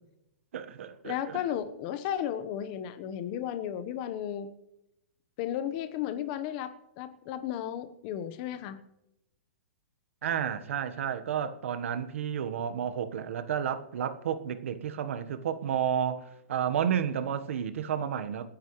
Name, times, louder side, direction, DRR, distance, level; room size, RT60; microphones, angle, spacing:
voice 1, 0.5-1.4 10.2-18.5, right 8 dB, 70° right, 1.3 m, -31 dB
voice 2, 1.0-4.5 5.4-8.8, left 10 dB, 40° left, 1.1 m, -34 dB
27.5 x 10.0 x 3.2 m
hypercardioid pair, 150°, 7 cm